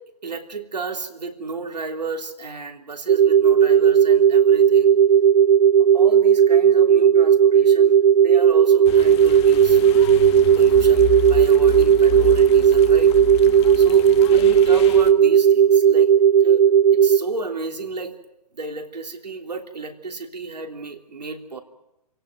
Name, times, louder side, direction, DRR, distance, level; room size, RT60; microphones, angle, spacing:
voice 1, 0.2-5.0 5.9-10.1 10.5-13.1 13.5-16.1 16.4-16.7 16.9-18.2 18.5-21.6, right 3 dB, 85° right, 4 dB, 3.4 m, -33 dB
sound 1, 3.1-17.2, right 8 dB, 70° right, 0.8 m, -15 dB
sound 2, 8.8-15.1, left 11 dB, 45° left, 1.7 m, -32 dB
27.5 x 17.0 x 9.4 m, 0.89 s
figure-of-eight pair, 125°, 21 cm